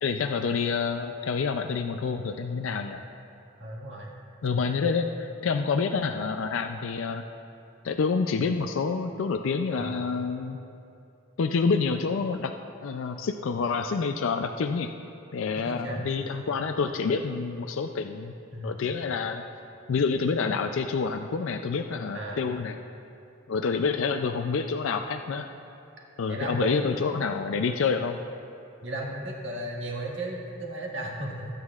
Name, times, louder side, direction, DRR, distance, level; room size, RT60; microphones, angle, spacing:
voice 1, 0.0-3.0 4.4-7.2 7.8-10.6 11.4-12.5 12.8-14.9 15.3-18.3 18.6-19.4 19.9-22.7 23.5-25.5 26.2-28.2, left 5 dB, 70° left, 6 dB, 0.4 m, -28 dB
voice 2, 3.6-4.1 4.6-4.8 9.8-10.1 15.5-16.1 18.5-18.9 22.1-22.5 26.3-26.9 28.8-31.5, right 1 dB, 65° right, -2 dB, 1.7 m, -35 dB
19.0 x 9.3 x 2.4 m, 2.7 s
head